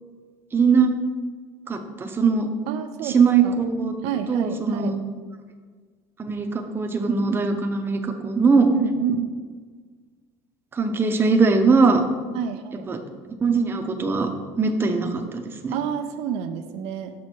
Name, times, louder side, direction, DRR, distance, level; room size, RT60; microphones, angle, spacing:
voice 1, 0.5-0.9 1.7-2.5 3.0-3.9 4.3-5.0 6.2-8.7 10.7-12.0 12.9-13.0 13.4-14.3 14.6-15.7, right 4 dB, 20° right, 5 dB, 0.7 m, -21 dB
voice 2, 2.7-3.6 4.0-4.9 8.7-9.3 12.3-12.9 15.7-17.1, right 8 dB, 70° right, 7 dB, 0.5 m, -28 dB
6.2 x 5.9 x 4.4 m, 1.5 s
cardioid pair, 135°, 11 cm